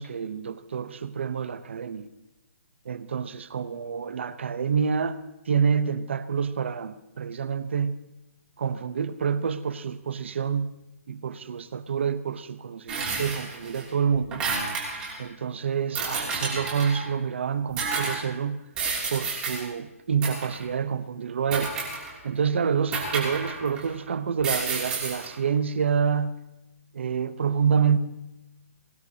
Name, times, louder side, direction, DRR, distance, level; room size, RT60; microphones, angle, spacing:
voice 1, 0.0-2.1 2.9-5.2 5.5-8.0 8.6-10.8 11.1-14.5 15.2-18.6 19.1-21.7 22.2-26.4 26.9-28.0, right 6 dB, 50° right, 0.9 m, -27 dB
sound 1, 12.9-13.8 14.1-15.2 16.0-17.1 17.8-18.2 18.8-19.6 20.2-20.6 21.5-22.3 22.9-23.9 24.4-25.3, right 4 dB, 10° right, 2.9 m, -30 dB
22.0 x 18.5 x 2.9 m
hypercardioid pair, 170°, 8 cm